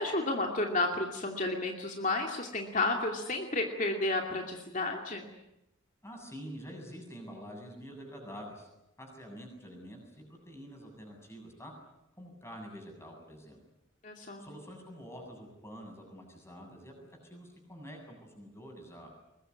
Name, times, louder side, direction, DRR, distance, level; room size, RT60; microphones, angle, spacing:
voice 1, 0.0-5.3 14.0-14.4, left 2 dB, 40° left, 2 dB, 2.6 m, -32 dB
voice 2, 6.0-8.7 9.0-11.7 12.2-13.6 14.4-16.9 17.2-19.1, equal, 15° left, 2 dB, 7.8 m, -47 dB
22.5 x 21.0 x 9.7 m, 0.88 s
head